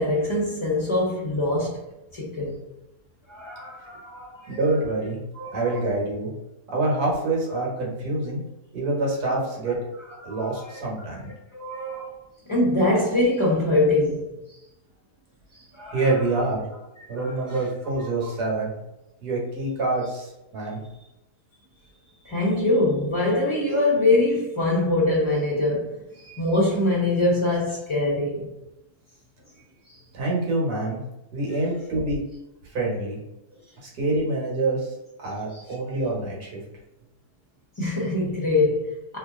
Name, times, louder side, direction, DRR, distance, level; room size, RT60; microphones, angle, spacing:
voice 1, 0.0-1.8 2.1-2.6 3.3-4.6 5.3-5.8 9.7-9.8 10.2-11.2 11.5-12.2 12.5-14.2 15.7-16.4 17.0-17.7 18.2-18.3 22.2-25.9 26.2-28.5 37.8-39.2, left 2 dB, 25° left, 0.8 m, -24 dB
voice 2, 4.5-5.2 5.5-6.3 6.7-8.4 8.7-9.8 10.2-11.3 15.9-16.7 17.1-18.7 19.2-20.8 30.1-31.0 31.3-32.2 32.7-33.2 33.8-34.8 35.2-36.6, right 2 dB, 75° right, 1.8 m, -26 dB
3.2 x 2.8 x 3.6 m
omnidirectional pair, 1.7 m